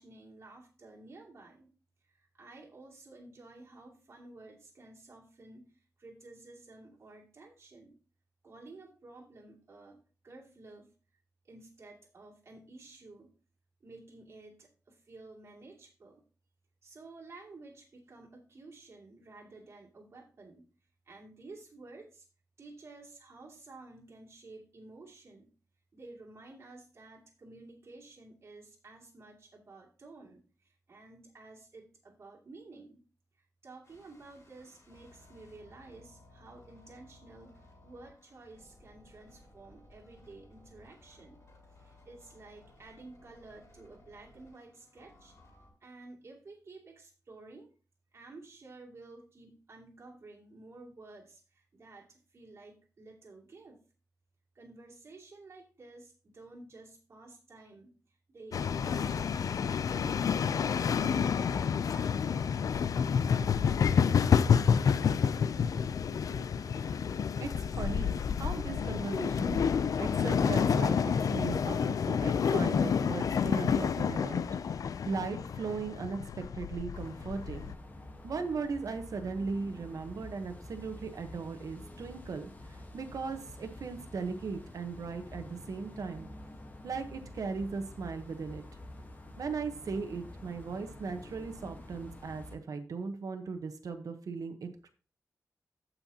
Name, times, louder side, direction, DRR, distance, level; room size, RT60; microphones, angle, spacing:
voice 1, 0.0-1.7 2.0-5.7 6.0-8.0 8.4-10.9 11.4-13.3 13.8-16.2 16.8-20.6 21.1-22.3 22.6-25.5 25.9-33.0 33.6-41.4 41.7-45.3 45.8-47.7 48.1-53.8 54.5-59.3 59.8-62.4, right 2 dB, 50° right, -2 dB, 2.6 m, -52 dB
sound 1, 33.8-45.7, left 2 dB, 55° left, 3.4 m, -59 dB
sound 2, 58.5-77.8, left 7 dB, 90° left, 0.4 m, -29 dB
voice 2, 66.0-66.5 66.9-67.1 67.4-69.6 70.0-77.7 78.2-86.3 86.8-88.6 89.4-94.9, right 4 dB, 85° right, 7 dB, 1.1 m, -38 dB
sound 3, 76.9-92.6, left 1 dB, 30° left, 1.3 m, -48 dB
15.5 x 5.7 x 2.9 m, 0.36 s
wide cardioid pair, 150°, 6 cm